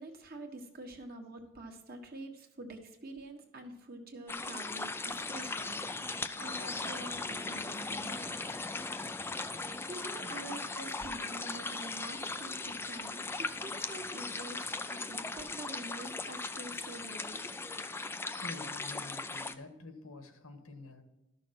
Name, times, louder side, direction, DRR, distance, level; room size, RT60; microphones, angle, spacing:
voice 1, 0.0-8.4 9.9-17.4, right 2 dB, 45° right, 1.5 m, -46 dB
sound 1, 4.3-19.5, left 3 dB, 10° left, 0.3 m, -38 dB
voice 2, 18.3-21.0, left 2 dB, 85° left, 1.7 m, -48 dB
13.0 x 6.3 x 5.9 m
head